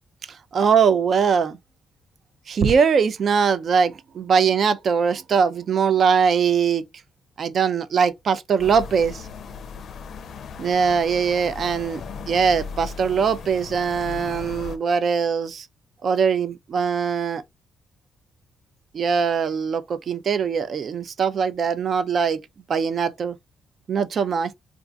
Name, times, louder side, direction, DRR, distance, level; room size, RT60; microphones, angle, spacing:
voice 1, 0.5-1.6 2.5-6.8 7.4-9.3 10.6-15.7 16.0-17.4 18.9-22.4 22.7-23.4 23.9-24.6, right 6 dB, 55° right, 0.4 m, -21 dB
sound 1, 8.6-14.8, left 5 dB, 60° left, 0.4 m, -37 dB
2.4 x 2.3 x 3.8 m
cardioid pair, 90°, 0 cm